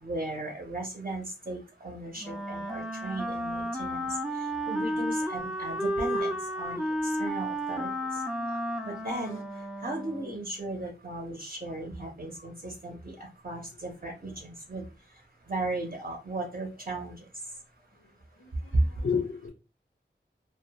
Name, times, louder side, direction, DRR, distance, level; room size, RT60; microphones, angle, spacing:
voice 1, 0.0-9.4 9.8-14.9 15.5-17.2 18.7-18.8, right 2 dB, 40° right, 0.6 m, -36 dB
Wind instrument woodwind instrument, 2.2-10.5, equal, ahead, 0.4 m, -32 dB
voice 2, 18.4-18.7 19.0-19.5, left 6 dB, 85° left, 0.6 m, -32 dB
2.1 x 2.1 x 2.8 m
wide cardioid pair, 45°, 20 cm